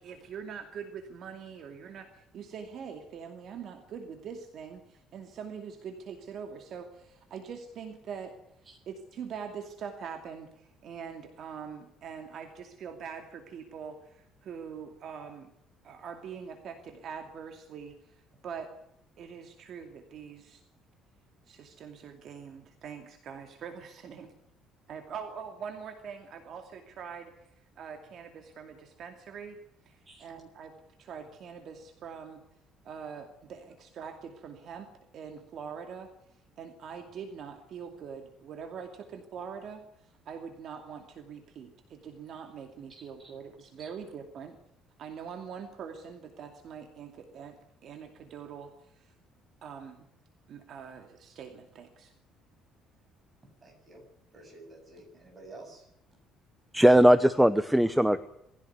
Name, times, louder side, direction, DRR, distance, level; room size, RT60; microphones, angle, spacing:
voice 1, 0.0-8.4 8.9-15.5 15.8-18.7 19.2-20.6 21.5-24.3 24.9-27.5 27.8-29.6 29.8-32.4 32.8-36.1 36.6-44.6 45.0-47.6 47.8-49.1 49.6-50.1 50.5-52.1, right 6 dB, 45° right, 5 dB, 2.6 m, -43 dB
voice 2, 42.9-43.3 43.8-43.9 53.6-54.0 54.3-55.8, right 2 dB, 20° right, 2 dB, 7.9 m, -50 dB
voice 3, 56.7-58.4, equal, 5° right, 11 dB, 0.7 m, -20 dB
21.0 x 16.0 x 9.5 m, 0.77 s
cardioid pair, 170°, 0 cm